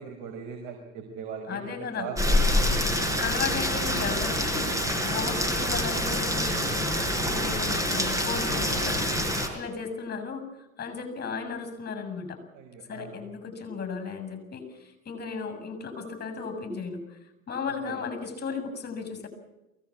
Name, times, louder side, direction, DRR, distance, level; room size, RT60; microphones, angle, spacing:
voice 1, 0.0-3.1 12.5-13.2 17.7-18.0, right 6 dB, 65° right, 3 dB, 5.2 m, -40 dB
voice 2, 1.5-2.1 3.2-4.7 5.0-9.3 9.5-10.5 10.8-12.4 12.9-17.2 17.5-19.3, left 5 dB, 25° left, 10 dB, 7.4 m, -35 dB
Rain, 2.2-9.5, left 1 dB, 10° right, 5.6 m, -26 dB
23.0 x 18.0 x 8.7 m, 0.97 s
supercardioid pair, 95°, 36 cm